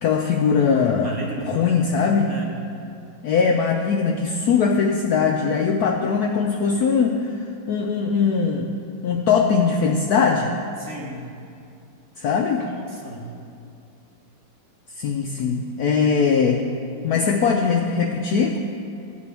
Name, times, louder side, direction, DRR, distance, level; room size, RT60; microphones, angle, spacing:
voice 1, 0.0-1.1 1.5-2.3 3.2-8.7 9.0-10.5 12.2-12.7 14.9-16.6 17.0-18.6, left 5 dB, 75° left, 2 dB, 0.9 m, -21 dB
voice 2, 1.0-1.7 2.3-2.6 10.8-11.3 12.6-13.3, right 2 dB, 45° right, -3 dB, 1.2 m, -35 dB
14.0 x 8.3 x 3.4 m, 2.6 s
omnidirectional pair, 2.1 m